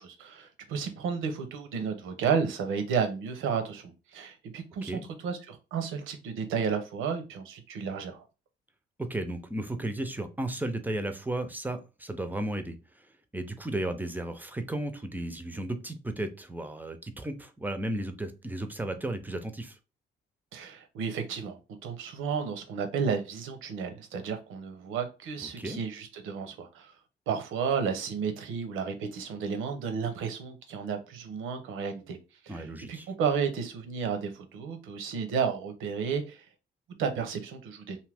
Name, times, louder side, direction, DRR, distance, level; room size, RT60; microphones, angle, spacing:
voice 1, 0.0-8.2 20.5-26.9 27.3-32.2 32.4-36.5 37.0-38.0, right 6 dB, 90° right, 0.7 m, -32 dB
voice 2, 9.0-13.1 13.3-19.8 25.6-25.8 32.5-33.1, right 1 dB, 10° right, 0.5 m, -34 dB
2.7 x 2.5 x 3.3 m
cardioid pair, 90°, 20 cm